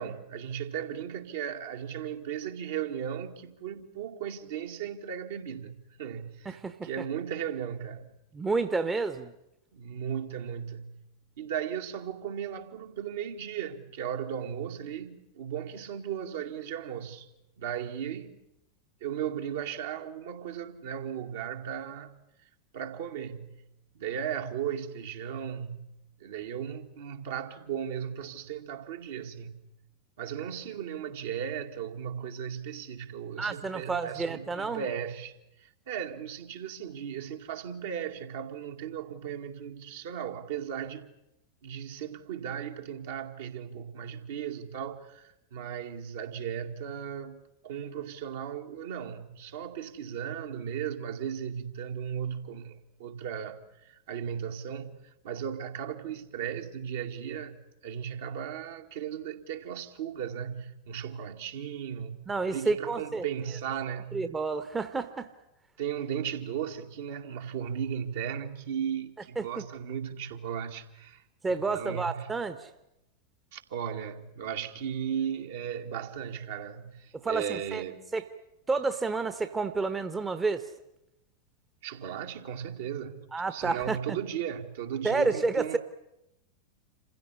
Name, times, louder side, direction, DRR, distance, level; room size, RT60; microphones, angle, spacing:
voice 1, 0.0-8.2 9.7-11.0 11.4-17.3 17.6-18.4 19.0-22.2 22.7-23.6 23.9-25.9 26.2-29.6 30.2-35.3 35.6-41.1 41.6-47.4 47.6-57.6 57.8-64.3 65.8-71.2 71.5-72.3 73.5-78.1 81.8-83.2 83.5-85.8, right 8 dB, 55° right, 2.3 m, -36 dB
voice 2, 6.4-6.9 8.3-9.3 33.4-34.8 62.3-63.2 64.1-65.3 69.4-69.6 71.4-72.7 77.1-77.8 78.1-78.2 78.7-80.7 83.3-84.2 85.0-85.8, right 3 dB, 15° right, 1.2 m, -30 dB
27.5 x 16.0 x 10.0 m
figure-of-eight pair, 90°, 0 cm